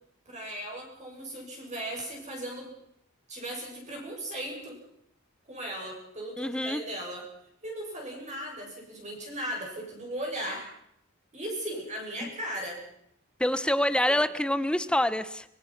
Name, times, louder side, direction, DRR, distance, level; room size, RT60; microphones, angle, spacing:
voice 1, 0.3-2.7 3.3-4.8 5.5-7.2 7.6-10.7 11.3-12.8 14.0-14.2, right 1 dB, 35° right, 1 dB, 7.6 m, -37 dB
voice 2, 6.4-6.8 12.2-12.3 13.4-15.4, left 1 dB, 5° left, 14 dB, 0.8 m, -26 dB
24.0 x 23.5 x 6.0 m, 0.75 s
head